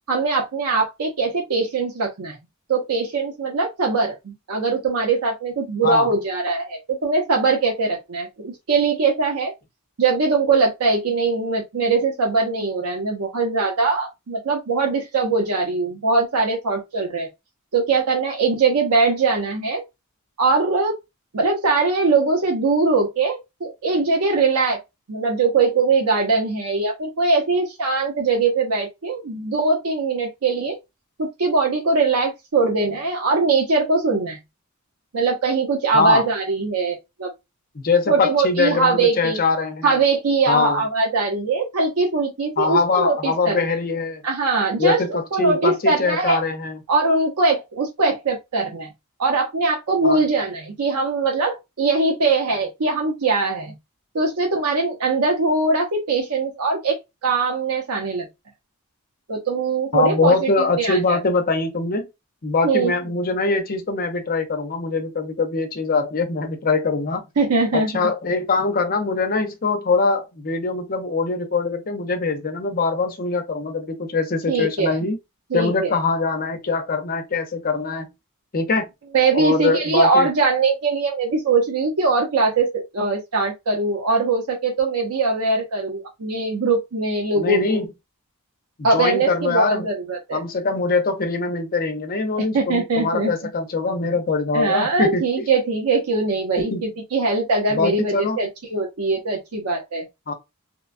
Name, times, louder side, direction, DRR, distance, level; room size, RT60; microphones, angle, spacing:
voice 1, 0.1-2.4 2.7-9.5 10.0-17.3 17.7-19.8 20.4-21.0 21.3-24.8 25.1-30.8 31.2-34.4 35.1-37.3 38.1-39.4 39.8-43.7 44.2-46.4 46.9-48.9 49.2-53.7 54.1-57.0 57.2-58.3 59.3-60.5 60.8-61.2 62.6-62.9 67.4-68.1 74.5-74.9 75.5-75.9 79.1-87.8 88.8-90.4 92.4-93.3 94.5-100.1, right 3 dB, 85° right, 0.7 m, -21 dB
voice 2, 35.9-36.2 37.7-40.0 40.5-40.8 42.6-44.2 44.8-46.8 50.0-50.2 59.9-62.1 62.4-67.2 67.7-75.2 75.5-78.1 78.5-78.9 79.3-80.3 87.4-87.9 88.8-89.9 90.3-95.2 96.6-96.9 97.7-98.4 100.3-100.4, left 4 dB, 40° left, 0.6 m, -22 dB
2.9 x 2.2 x 2.5 m
head